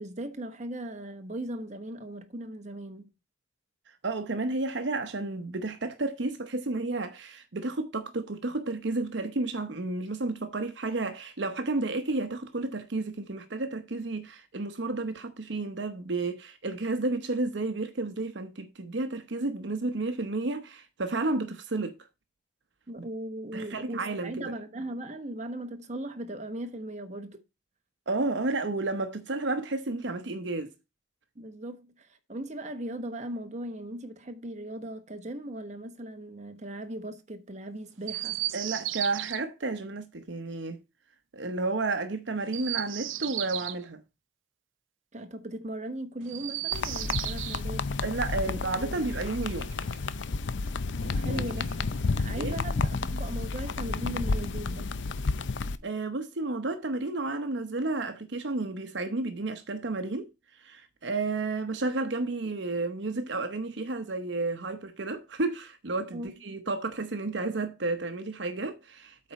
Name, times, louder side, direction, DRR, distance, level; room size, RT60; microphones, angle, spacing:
voice 1, 0.0-3.1 22.9-27.4 31.3-38.4 45.1-47.8 48.5-49.0 51.0-51.9 52.2-54.9 66.1-66.3, right 1 dB, 35° right, 1.1 m, -38 dB
voice 2, 4.0-21.9 23.5-24.5 28.1-30.7 38.5-40.8 41.3-44.0 48.0-49.7 51.3-51.5 52.3-52.5 55.8-60.3 60.6-69.3, right 2 dB, 65° right, 0.9 m, -32 dB
Chirp tweet, 38.0-39.4 42.4-43.8 46.2-47.6 49.1-50.1 51.2-52.1, right 15 dB, 80° right, 0.5 m, -36 dB
sound 1, 46.7-55.8, left 3 dB, 70° left, 0.6 m, -31 dB
8.5 x 4.1 x 5.8 m
head